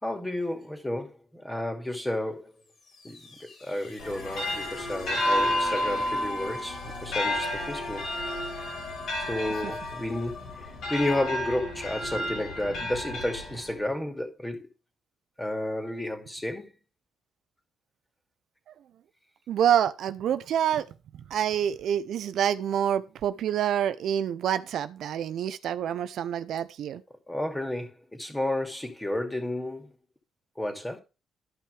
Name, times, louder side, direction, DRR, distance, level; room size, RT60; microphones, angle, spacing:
voice 1, 0.0-2.5 3.0-8.1 9.2-14.7 15.4-16.7 27.3-29.9 30.6-31.0, left 1 dB, 10° left, 2.6 m, -32 dB
sound 1, 2.6-12.3, left 4 dB, 55° left, 3.0 m, -45 dB
sound 2, 4.0-13.9, left 1 dB, 75° left, 3.4 m, -31 dB
voice 2, 19.5-20.9 21.3-27.0, right 9 dB, 70° right, 0.5 m, -27 dB
13.0 x 5.6 x 3.3 m
cardioid pair, 90°, 0 cm